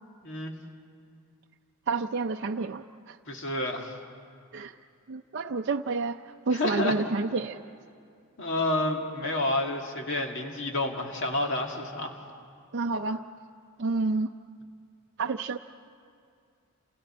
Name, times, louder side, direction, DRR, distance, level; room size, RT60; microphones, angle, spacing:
voice 1, 0.2-0.5 3.3-3.9 6.5-6.9 8.4-12.1, left 1 dB, 60° left, 2 dB, 2.2 m, -29 dB
voice 2, 1.9-3.2 4.5-4.8 5.1-7.6 12.7-13.2 13.8-14.3 15.2-15.6, right 3 dB, 55° right, 3 dB, 0.5 m, -29 dB
30.0 x 28.5 x 4.4 m, 2.4 s
head